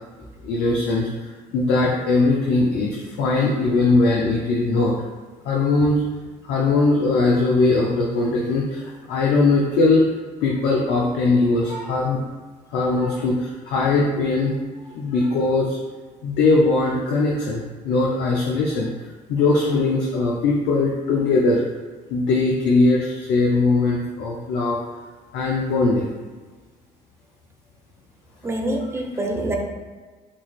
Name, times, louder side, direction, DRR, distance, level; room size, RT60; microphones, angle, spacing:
voice 1, 0.4-1.1 1.5-4.9 5.4-6.0 6.4-10.0 10.4-12.2 12.7-14.6 14.9-15.8 16.2-18.9 19.3-21.6 22.1-24.8 25.3-26.1, left 3 dB, 70° left, -2 dB, 0.5 m, -20 dB
voice 2, 28.4-29.6, right 1 dB, 15° right, 1 dB, 0.6 m, -25 dB
3.8 x 2.4 x 2.3 m, 1.4 s
hypercardioid pair, 60°, 19 cm